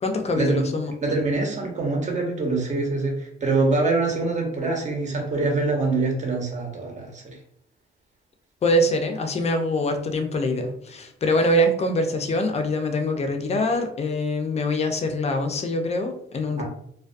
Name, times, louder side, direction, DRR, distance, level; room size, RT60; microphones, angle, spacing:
voice 1, 0.0-0.9 8.6-16.6, left 1 dB, 35° left, 5 dB, 0.5 m, -24 dB
voice 2, 1.0-7.4 16.6-16.7, right 3 dB, 35° right, 0 dB, 0.9 m, -24 dB
2.3 x 2.2 x 2.5 m, 0.70 s
cardioid pair, 90°, 20 cm